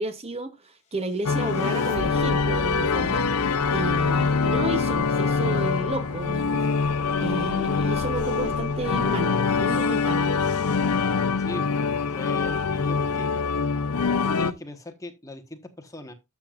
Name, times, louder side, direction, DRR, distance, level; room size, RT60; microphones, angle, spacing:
voice 1, 0.0-3.3 3.7-6.7 7.2-10.4, right 2 dB, 25° right, 0.8 m, -32 dB
sound 1, 1.0-11.2, left 1 dB, 30° left, 2.6 m, -40 dB
sound 2, 1.2-14.5, left 5 dB, 90° left, 0.6 m, -24 dB
voice 2, 11.4-13.3 14.2-16.1, left 1 dB, 15° left, 1.2 m, -39 dB
12.5 x 7.3 x 2.5 m
head